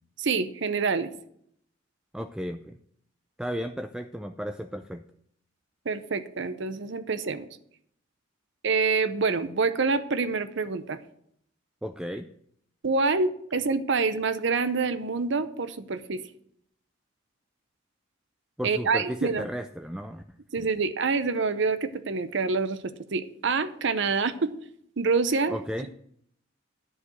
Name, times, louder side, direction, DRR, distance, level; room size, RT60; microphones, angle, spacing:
voice 1, 0.2-1.1 5.9-7.4 8.6-11.0 12.8-16.2 18.6-19.4 20.5-24.5 25.0-25.6, right 4 dB, 65° right, 13 dB, 0.7 m, -26 dB
voice 2, 2.1-2.8 3.4-5.0 11.8-12.3 18.6-20.2 20.6-20.7 25.5-25.9, equal, 5° right, 8 dB, 0.3 m, -34 dB
11.0 x 5.0 x 7.8 m, 0.69 s
head